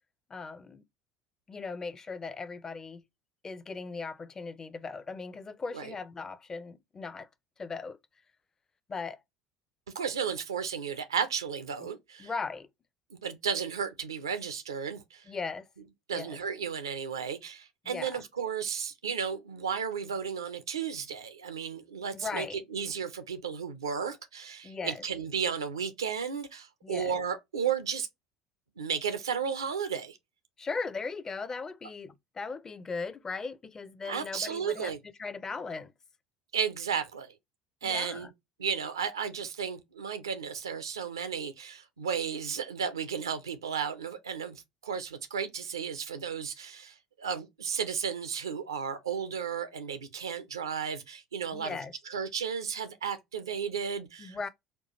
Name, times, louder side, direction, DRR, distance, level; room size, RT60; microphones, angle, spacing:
voice 1, 0.3-0.8 1.5-3.0 3.4-7.3 7.6-8.0 8.9-9.2 11.8-11.9 12.2-12.7 15.3-15.7 16.1-16.4 17.8-18.3 22.1-22.6 24.6-25.0 26.8-27.2 30.6-34.9 35.2-35.9 37.8-38.3 51.5-51.9 54.2-54.5, left 4 dB, 25° left, 0.5 m, -38 dB
voice 2, 9.9-12.3 13.1-15.3 16.1-28.1 28.8-30.2 34.0-35.0 36.5-37.3 37.8-38.3 38.6-51.8 52.1-54.4, right 7 dB, 75° right, 0.6 m, -34 dB
4.4 x 2.4 x 2.9 m
figure-of-eight pair, 65°, 2 cm